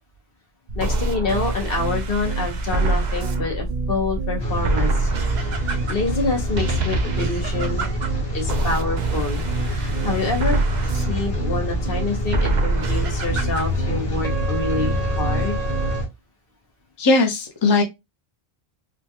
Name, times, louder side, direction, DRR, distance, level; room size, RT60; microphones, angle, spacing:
voice 1, 0.7-5.1 5.6-8.0 8.3-10.6 10.9-15.6, left 3 dB, 65° left, 1.3 m, -27 dB
sound 1, 0.7-16.0, right 3 dB, 55° right, 0.6 m, -25 dB
Rain, 4.4-16.1, left 1 dB, 85° left, 1.7 m, -28 dB
voice 2, 17.0-17.8, left 3 dB, 30° left, 0.6 m, -18 dB
3.7 x 2.3 x 2.8 m
omnidirectional pair, 1.0 m